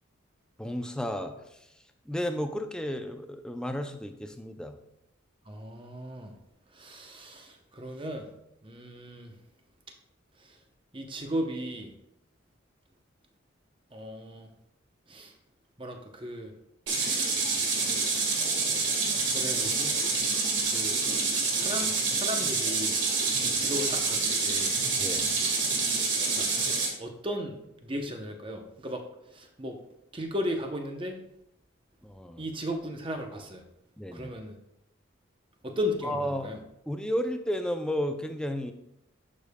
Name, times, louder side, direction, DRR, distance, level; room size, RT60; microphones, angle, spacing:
voice 1, 0.6-1.3 2.1-4.8 25.0-25.3 32.0-32.5 34.0-34.3 36.0-36.5 36.9-38.7, equal, 5° left, 7 dB, 0.3 m, -32 dB
voice 2, 5.5-6.3 6.8-8.3 8.6-9.3 10.9-11.9 13.9-14.5 15.1-15.3 15.8-16.5 19.3-20.0 20.7-20.9 21.5-22.9 23.4-24.7 26.3-26.4 27.0-29.0 29.3-29.8 30.1-31.2 32.4-33.6 34.1-34.5 35.6-36.6, equal, 25° right, 4 dB, 0.7 m, -35 dB
sound 1, 16.9-26.9, right 4 dB, 60° right, 1.5 m, -27 dB
11.0 x 5.2 x 2.2 m, 0.83 s
head